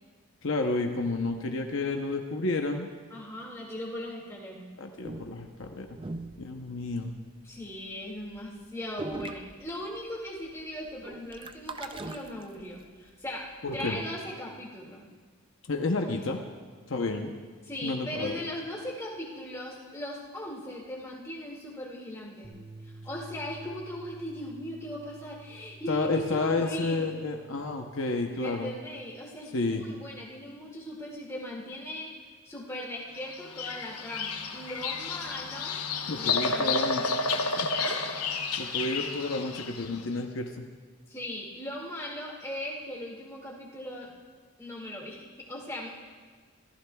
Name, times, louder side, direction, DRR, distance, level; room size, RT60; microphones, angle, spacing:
voice 1, 0.4-2.9 4.8-6.0 6.4-7.1 13.6-14.0 15.7-16.4 16.9-17.3 17.8-18.4 25.9-28.7 29.5-29.8 36.1-37.2 37.6-37.7 38.6-40.6, left 3 dB, 60° left, 3 dB, 0.8 m, -30 dB
voice 2, 3.1-4.7 7.4-13.4 13.7-15.1 17.6-22.5 22.8-27.1 28.3-35.8 36.2-36.8 37.8-38.0 41.1-44.1 44.6-45.9, left 1 dB, 15° left, -3 dB, 2.1 m, -39 dB
sound 1, 5.0-7.3 7.6-7.9 8.2-8.4 8.6-8.7 9.0-10.2 10.4-12.9, right 2 dB, 20° right, 0.4 m, -40 dB
sound 2, 22.4-28.7, right 2 dB, 5° right, 2.0 m, -50 dB
Bird vocalization bird call bird song, 33.3-39.9, left 4 dB, 90° left, 1.0 m, -31 dB
26.5 x 14.5 x 2.3 m, 1.5 s
head